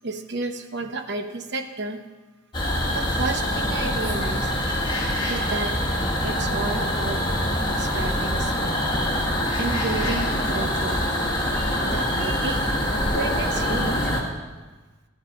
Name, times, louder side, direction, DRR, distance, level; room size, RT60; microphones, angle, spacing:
voice 1, 0.0-2.0 2.9-4.5 5.2-5.8 6.2-7.2 7.7-8.9 9.6-14.1, right 3 dB, 55° right, 6 dB, 1.0 m, -32 dB
sound 1, 2.5-14.2, equal, 25° left, 2.0 m, -24 dB
13.5 x 9.6 x 5.2 m, 1.2 s
head